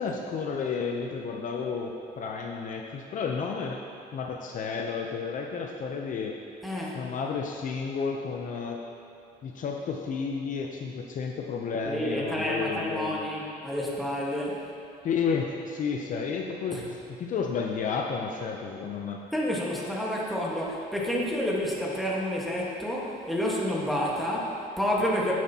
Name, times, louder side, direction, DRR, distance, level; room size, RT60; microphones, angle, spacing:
voice 1, 0.0-3.8 4.1-6.4 6.9-8.8 9.4-13.3 15.0-16.8 17.1-19.2, left 5 dB, 50° left, 1 dB, 0.6 m, -31 dB
voice 2, 6.6-7.0 11.8-14.7 16.7-16.8 19.3-25.3, equal, ahead, -4 dB, 1.4 m, -29 dB
9.5 x 7.6 x 2.9 m, 2.7 s
cardioid pair, 110°, 17 cm